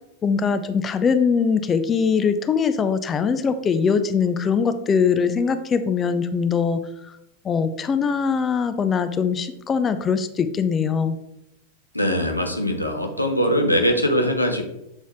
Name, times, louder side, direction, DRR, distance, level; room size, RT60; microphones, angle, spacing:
voice 1, 0.2-7.2 7.4-11.2, left 6 dB, 25° left, 10 dB, 0.4 m, -22 dB
voice 2, 11.9-14.6, equal, 85° left, 3 dB, 0.8 m, -21 dB
7.0 x 4.1 x 3.5 m, 0.84 s
figure-of-eight pair, 90°, 0 cm